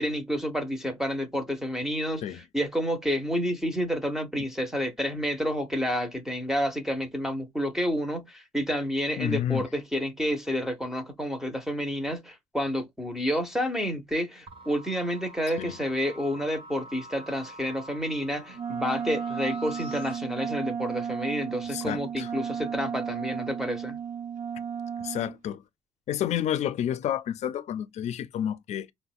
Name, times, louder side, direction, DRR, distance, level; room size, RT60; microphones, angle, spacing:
voice 1, 0.0-24.0, equal, 5° right, 0.6 m, -29 dB
voice 2, 9.2-9.7 15.6-15.8 21.7-22.3 25.0-25.6 26.1-28.9, left 10 dB, 60° left, 0.4 m, -30 dB
sound 1, 14.5-20.2, left 1 dB, 45° right, 0.7 m, -46 dB
Wind instrument woodwind instrument, 18.5-25.4, right 7 dB, 75° right, 0.8 m, -34 dB
4.9 x 2.1 x 2.2 m
cardioid pair, 120°, 13 cm